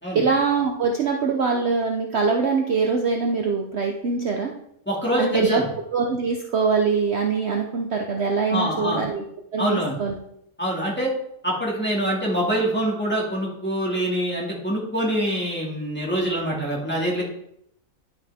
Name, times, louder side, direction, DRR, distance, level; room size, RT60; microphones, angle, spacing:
voice 1, 0.1-4.5 5.2-5.6 5.9-9.2 9.5-10.1, right 5 dB, 55° right, 2 dB, 1.0 m, -23 dB
voice 2, 4.9-5.6 8.5-9.0 9.6-10.0 10.6-11.1 11.4-17.2, equal, 5° left, -4 dB, 2.3 m, -25 dB
11.0 x 5.6 x 3.6 m, 0.75 s
omnidirectional pair, 1.5 m